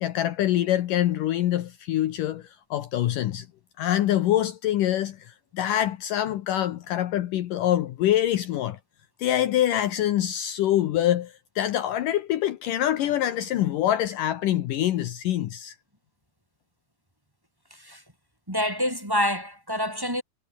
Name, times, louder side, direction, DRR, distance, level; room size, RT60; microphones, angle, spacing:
voice 1, 0.0-3.5 3.8-8.8 9.2-15.8, left 12 dB, 70° left, 2.6 m, -25 dB
voice 2, 18.5-20.2, equal, 5° right, 5.3 m, -27 dB
omnidirectional pair, 4.2 m